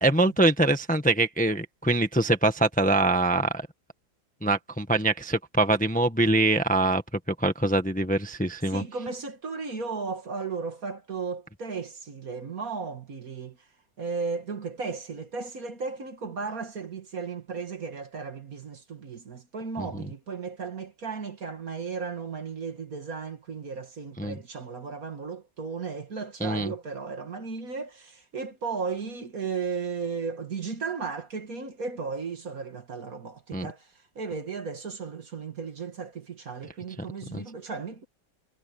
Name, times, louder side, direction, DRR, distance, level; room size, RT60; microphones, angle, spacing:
voice 1, 0.0-3.7 4.4-7.0 7.3-8.8 19.8-19.9 24.2-24.4 26.4-26.7 33.5-33.7 37.3-37.4, right 2 dB, 5° left, 1.3 m, -24 dB
voice 2, 8.7-13.7 14.0-38.1, right 5 dB, 45° right, 2.1 m, -35 dB
omnidirectional pair, 2.2 m